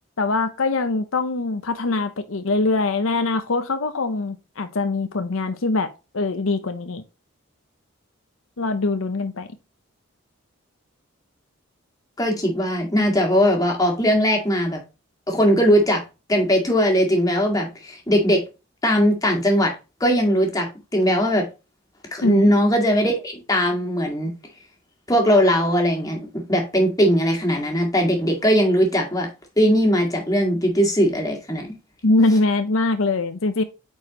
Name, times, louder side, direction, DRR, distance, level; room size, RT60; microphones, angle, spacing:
voice 1, 0.2-7.0 8.6-9.5 22.2-22.5 32.0-33.6, left 3 dB, 75° left, 0.8 m, -23 dB
voice 2, 12.2-14.8 15.3-16.0 16.3-18.4 18.8-19.8 20.0-21.5 22.1-24.3 25.1-29.3 29.6-31.7, equal, 15° left, 2.0 m, -19 dB
8.7 x 4.7 x 2.9 m
head